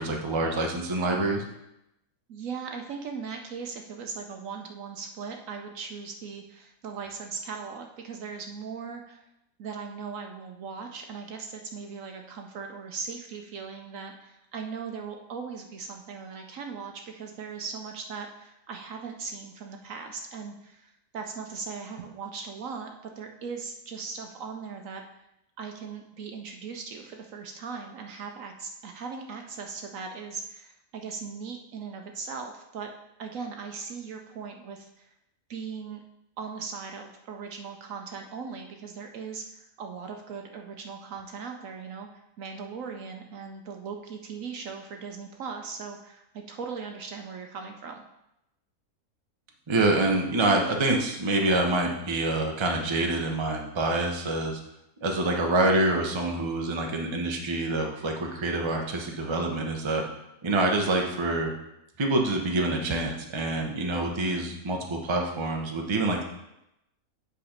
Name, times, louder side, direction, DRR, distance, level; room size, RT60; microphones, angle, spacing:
voice 1, 0.0-1.4 49.7-54.6 55.0-60.0 60.4-61.5 62.0-66.2, right 2 dB, 25° right, 2 dB, 0.7 m, -26 dB
voice 2, 2.3-9.3 9.6-22.9 23.2-25.0 25.6-32.9 33.2-35.1 35.5-36.0 36.4-48.0, right 5 dB, 65° right, 4 dB, 1.0 m, -39 dB
8.6 x 4.1 x 5.0 m, 0.86 s
omnidirectional pair, 1.6 m